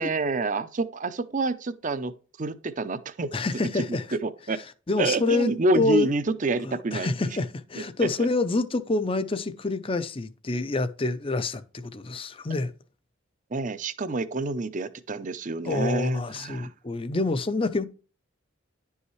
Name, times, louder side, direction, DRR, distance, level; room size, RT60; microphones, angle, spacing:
voice 1, 0.0-2.1 2.4-3.3 3.8-4.6 5.0-7.1 7.8-8.1 13.5-16.7, right 3 dB, 40° right, 0.5 m, -28 dB
voice 2, 3.3-4.1 4.5-6.1 6.6-12.7 15.6-17.8, left 3 dB, 25° left, 0.5 m, -27 dB
10.5 x 5.5 x 3.1 m
head